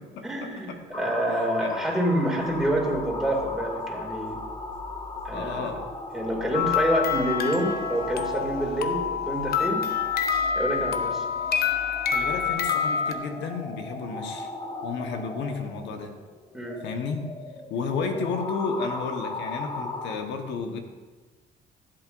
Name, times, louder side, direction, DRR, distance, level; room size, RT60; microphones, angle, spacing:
voice 1, 0.2-4.4 5.2-5.7 6.1-9.9 10.5-11.2 16.5-16.9, right 1 dB, 5° right, -2 dB, 2.5 m, -27 dB
sound 1, 0.9-20.2, left 2 dB, 25° left, 1.2 m, -38 dB
voice 2, 1.3-1.8 5.3-5.9 12.1-14.5 14.8-16.1 16.8-17.2 17.7-20.8, left 4 dB, 75° left, 5 dB, 1.3 m, -32 dB
sound 2, 2.4-12.6, left 1 dB, 50° right, 1.3 m, -46 dB
sound 3, 6.5-13.1, left 7 dB, 55° left, 0.8 m, -27 dB
14.5 x 7.9 x 2.6 m, 1.3 s
cardioid pair, 95°, 19 cm